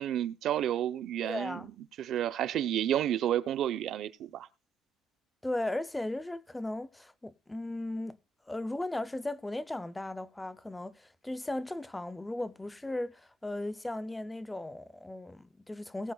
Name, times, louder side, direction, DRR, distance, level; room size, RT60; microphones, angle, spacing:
voice 1, 0.0-1.6 2.0-4.5, right 11 dB, 50° right, 0.7 m, -31 dB
voice 2, 1.2-1.7 5.4-8.2 8.5-16.1, left 1 dB, 5° left, 0.5 m, -37 dB
20.0 x 8.4 x 2.3 m
cardioid pair, 170°, 0 cm